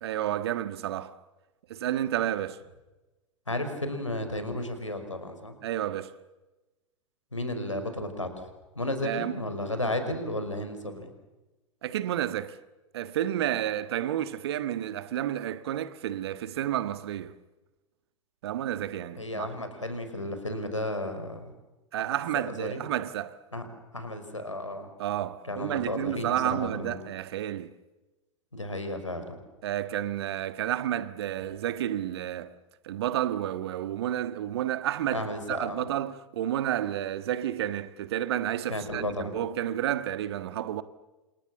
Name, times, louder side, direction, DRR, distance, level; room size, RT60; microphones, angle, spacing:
voice 1, 0.0-1.2 1.7-2.6 5.6-6.1 9.0-9.3 11.8-12.6 12.9-17.4 18.4-19.5 21.9-23.4 25.0-27.7 29.6-32.5 32.8-40.8, right 11 dB, 55° right, 1.5 m, -31 dB
voice 2, 3.5-5.6 7.3-8.5 8.8-11.1 19.2-21.5 22.3-22.8 23.5-23.7 23.9-24.9 25.4-27.0 28.5-29.4 35.1-35.9 38.7-39.3, left 1 dB, 85° left, 5.3 m, -33 dB
29.5 x 27.5 x 7.3 m
figure-of-eight pair, 90°, 16 cm